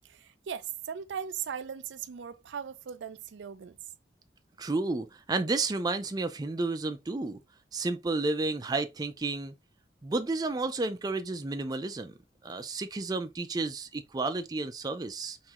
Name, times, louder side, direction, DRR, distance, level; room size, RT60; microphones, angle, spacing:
voice 1, 0.0-3.8, right 8 dB, 90° right, 0.4 m, -38 dB
voice 2, 4.6-7.4 7.7-9.5 10.0-12.1 12.4-15.4, right 3 dB, 20° right, 0.4 m, -31 dB
3.5 x 3.1 x 2.9 m
head